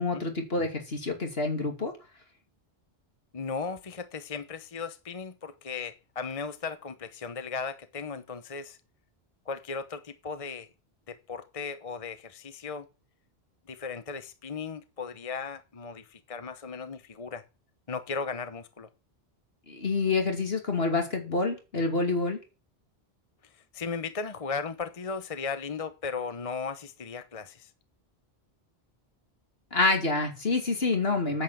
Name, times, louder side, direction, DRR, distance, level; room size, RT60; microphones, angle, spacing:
voice 1, 0.0-1.9 19.7-22.4 29.7-31.4, left 3 dB, 70° left, 2.9 m, -27 dB
voice 2, 3.3-8.8 9.5-10.7 11.1-12.9 13.7-17.4 17.9-18.9 23.5-27.7, left 5 dB, 35° left, 1.0 m, -36 dB
9.5 x 8.1 x 7.8 m
omnidirectional pair, 1.1 m